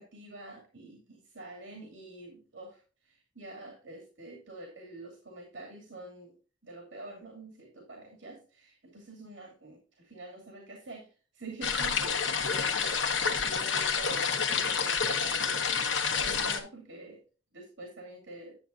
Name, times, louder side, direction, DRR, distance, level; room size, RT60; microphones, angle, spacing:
voice 1, 0.0-2.8 3.1-6.4 6.6-11.1 11.3-13.0 13.3-17.2 17.5-18.6, right 2 dB, 90° right, 1 dB, 2.5 m, -46 dB
sound 1, 11.6-16.6, left 6 dB, 80° left, 1.2 m, -29 dB
9.9 x 7.6 x 2.5 m, 0.35 s
head